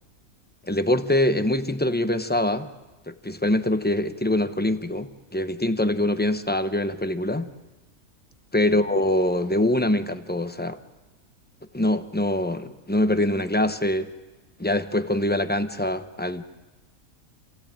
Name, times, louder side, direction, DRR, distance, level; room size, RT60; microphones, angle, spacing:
voice 1, 0.7-2.7 3.1-7.5 8.5-10.8 11.7-14.1 14.6-16.4, left 1 dB, 10° left, 9 dB, 0.6 m, -24 dB
27.0 x 16.5 x 8.9 m, 1.2 s
omnidirectional pair, 1.5 m